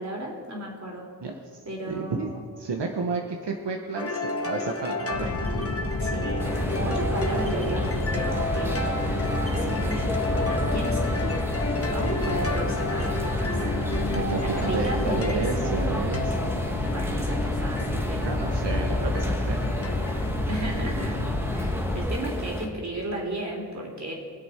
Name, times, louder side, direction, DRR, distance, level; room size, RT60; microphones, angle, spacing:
voice 1, 0.0-1.1 1.6-2.4 6.0-8.8 9.4-11.5 11.9-13.6 14.4-16.0 16.9-18.3 20.5-21.2 21.5-24.1, right 1 dB, 40° right, -1 dB, 3.3 m, -35 dB
voice 2, 1.2-1.6 1.9-2.3 2.6-5.3 12.0-12.6 14.1-16.3 18.2-19.6, right 4 dB, 85° right, 2 dB, 1.1 m, -31 dB
sound 1, 4.0-21.8, left 2 dB, 35° left, 1.1 m, -33 dB
sound 2, 5.1-22.1, left 2 dB, 90° left, 1.8 m, -30 dB
sound 3, 6.4-22.7, equal, 5° right, 1.4 m, -32 dB
23.5 x 8.0 x 4.4 m, 2.1 s
wide cardioid pair, 95°, 41 cm